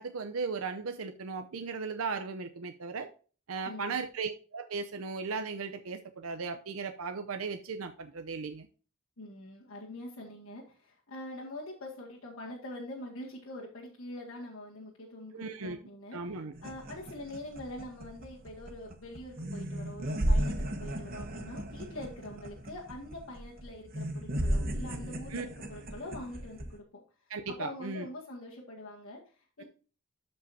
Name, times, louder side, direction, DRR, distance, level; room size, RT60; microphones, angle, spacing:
voice 1, 0.0-3.1 3.5-8.7 15.3-15.8 16.1-16.5 25.3-25.4 27.3-28.1, right 4 dB, 80° right, 0.6 m, -37 dB
voice 2, 3.7-4.0 9.2-16.2 16.6-26.8 27.2-29.6, left 1 dB, 75° left, 2.1 m, -44 dB
sound 1, 16.5-26.8, right 1 dB, 45° right, 1.1 m, -35 dB
12.5 x 5.4 x 2.8 m
head